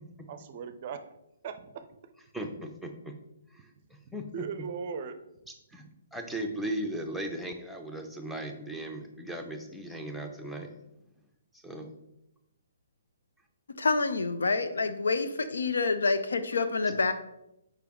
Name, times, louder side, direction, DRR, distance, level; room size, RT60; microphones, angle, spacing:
voice 1, 0.3-1.1 1.4-1.9 4.3-5.1, right 6 dB, 40° right, 10 dB, 0.5 m, -38 dB
voice 2, 2.3-3.1 4.1-4.3 5.7-5.9 6.1-10.7 11.6-11.9, right 1 dB, ahead, 1 dB, 0.7 m, -37 dB
voice 3, 13.8-17.1, left 4 dB, 70° left, 10 dB, 0.5 m, -27 dB
6.8 x 4.9 x 3.1 m, 0.85 s
figure-of-eight pair, 130°, 0 cm